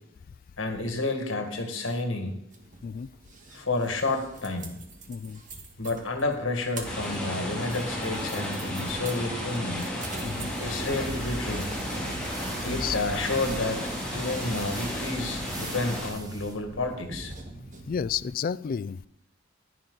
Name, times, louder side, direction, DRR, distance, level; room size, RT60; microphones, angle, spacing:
voice 1, 0.6-2.3 3.5-4.8 5.8-9.9 10.6-11.7 12.6-17.3, left 2 dB, 90° left, 4 dB, 1.9 m, -30 dB
sound 1, 2.5-18.3, right 2 dB, 40° right, 1.5 m, -43 dB
voice 2, 5.1-5.4 10.2-10.5 12.6-13.0 17.9-19.1, left 7 dB, 45° left, 18 dB, 0.3 m, -31 dB
sound 2, 6.8-16.1, equal, 5° left, 2.7 m, -33 dB
sound 3, 10.0-16.6, right 3 dB, 20° right, 1.2 m, -44 dB
10.5 x 10.5 x 3.9 m, 0.75 s
head